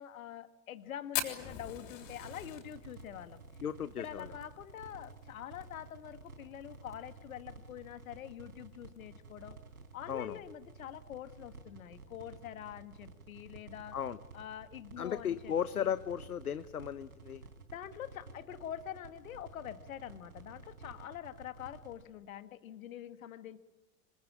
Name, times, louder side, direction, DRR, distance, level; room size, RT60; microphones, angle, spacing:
voice 1, 0.0-3.4 4.0-9.6 9.9-14.0 14.3-15.9 17.7-23.6, left 10 dB, 70° left, 12 dB, 1.8 m, -45 dB
Fire, 1.1-5.6 5.9-6.0 6.3-6.4 6.7-7.2 7.7-7.8 8.8-9.0, left 10 dB, 50° left, 6.1 m, -40 dB
sound 1, 2.0-22.0, right 3 dB, 80° right, 3.7 m, -52 dB
voice 2, 3.6-4.3 10.1-10.4 13.9-14.2 15.0-17.4, left 9 dB, 85° left, 15 dB, 0.9 m, -35 dB
26.0 x 25.5 x 8.6 m, 1.1 s
figure-of-eight pair, 85°, 43 cm